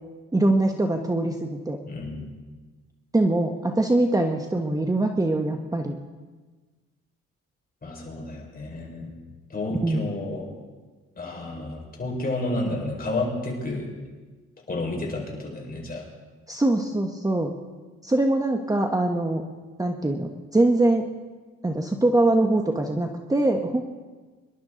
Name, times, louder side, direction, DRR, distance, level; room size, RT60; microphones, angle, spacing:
voice 1, 0.3-1.8 3.1-6.0 9.8-10.1 16.5-17.5 18.0-19.4 19.8-21.0 21.6-23.8, right 2 dB, 10° right, 4 dB, 1.1 m, -23 dB
voice 2, 1.8-2.3 7.8-9.1 9.5-10.5 11.1-13.9 14.7-16.0, left 2 dB, 30° left, -1 dB, 5.0 m, -31 dB
25.5 x 11.5 x 3.9 m, 1.4 s
cardioid pair, 90°, 30 cm